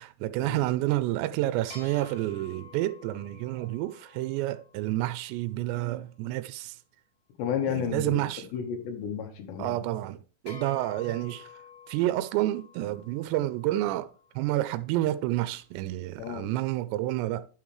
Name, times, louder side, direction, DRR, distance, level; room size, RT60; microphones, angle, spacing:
voice 1, 0.0-6.8 7.7-8.5 9.6-11.5 11.9-17.5, right 15 dB, 85° right, 2.8 m, -29 dB
sound 1, 1.7-5.4 10.5-14.8, left 6 dB, 40° left, 6.3 m, -50 dB
voice 2, 7.4-9.7 16.2-16.5, left 8 dB, 80° left, 3.6 m, -32 dB
10.5 x 7.4 x 3.1 m
omnidirectional pair, 5.0 m